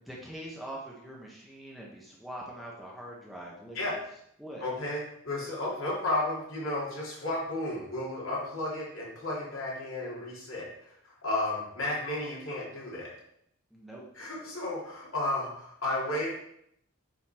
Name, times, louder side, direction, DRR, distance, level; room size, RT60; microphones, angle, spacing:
voice 1, 0.1-3.8 4.4-4.6 13.7-14.0, right 1 dB, ahead, -4 dB, 1.1 m, -43 dB
voice 2, 4.6-13.1 14.1-16.3, left 1 dB, 65° left, -5 dB, 2.9 m, -33 dB
9.0 x 4.1 x 4.3 m, 0.74 s
head